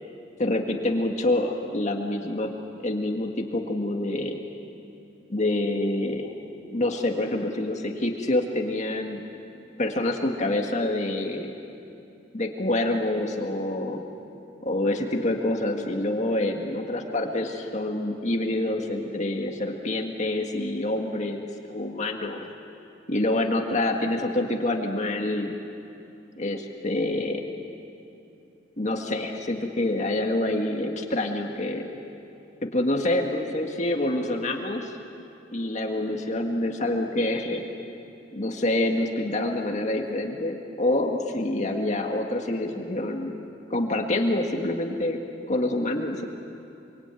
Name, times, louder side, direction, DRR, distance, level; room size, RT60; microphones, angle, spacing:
voice 1, 0.4-2.5 2.8-4.4 5.3-6.3 6.7-9.2 9.8-11.6 12.3-14.0 14.6-22.5 23.1-25.5 26.4-27.4 28.8-31.9 32.6-34.9 35.5-37.6 38.3-43.3 43.7-45.2 45.5-46.3, left 1 dB, 40° left, 2 dB, 1.8 m, -27 dB
26.5 x 24.5 x 9.1 m, 2.8 s
head